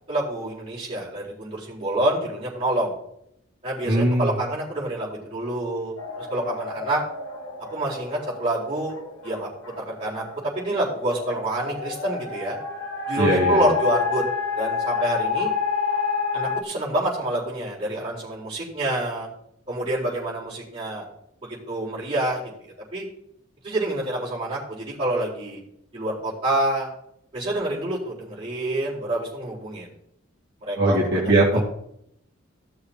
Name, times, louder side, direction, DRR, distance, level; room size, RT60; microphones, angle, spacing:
voice 1, 0.1-2.9 3.6-5.9 6.3-7.0 7.7-8.9 9.2-9.5 9.8-12.6 13.1-14.2 14.6-15.5 16.3-19.3 19.7-21.1 21.4-22.4 22.9-23.1 23.6-25.6 25.9-26.9 27.3-29.9 30.6-31.6, right 1 dB, 25° right, -7 dB, 4.1 m, -27 dB
voice 2, 3.9-4.3 13.2-13.6 30.8-31.6, right 1 dB, 50° right, -6 dB, 2.0 m, -20 dB
sound 1, 6.0-16.6, left 5 dB, 60° left, 1.6 m, -29 dB
16.0 x 6.7 x 2.9 m, 0.73 s
head